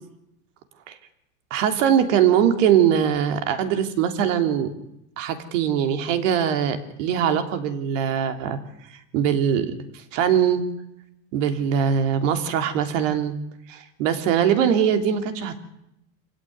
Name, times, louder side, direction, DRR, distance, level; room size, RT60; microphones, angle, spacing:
voice 1, 1.5-4.7 5.2-8.6 9.1-10.7 11.3-13.3 13.7-15.6, right 8 dB, 55° right, 8 dB, 3.4 m, -22 dB
26.5 x 16.5 x 9.5 m, 0.82 s
supercardioid pair, 150°, 45 cm